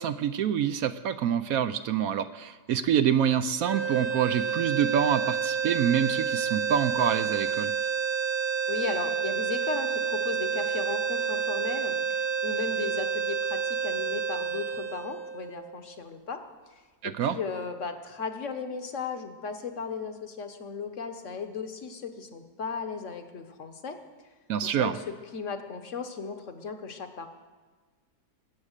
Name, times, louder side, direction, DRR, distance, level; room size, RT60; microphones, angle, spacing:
voice 1, 0.0-7.7 17.0-17.4 24.5-24.9, right 9 dB, 70° right, 11 dB, 1.0 m, -26 dB
sound 1, 3.6-15.8, right 6 dB, 40° right, 1.0 m, -29 dB
voice 2, 8.7-16.4 17.0-24.0 24.6-27.3, left 5 dB, 50° left, 7 dB, 1.4 m, -36 dB
20.5 x 8.5 x 6.6 m, 1.4 s
omnidirectional pair, 1.7 m